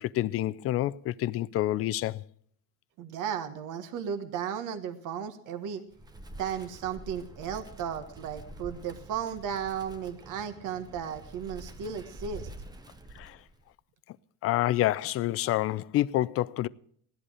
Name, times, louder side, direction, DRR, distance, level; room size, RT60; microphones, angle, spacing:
voice 1, 0.0-2.2 13.2-13.4 14.4-16.7, left 14 dB, 40° left, 0.4 m, -28 dB
voice 2, 3.0-5.8 6.4-12.5, right 8 dB, 55° right, 1.4 m, -35 dB
Wind, 5.9-13.7, right 1 dB, 10° right, 0.8 m, -47 dB
16.5 x 11.0 x 4.9 m
cardioid pair, 140°, 38 cm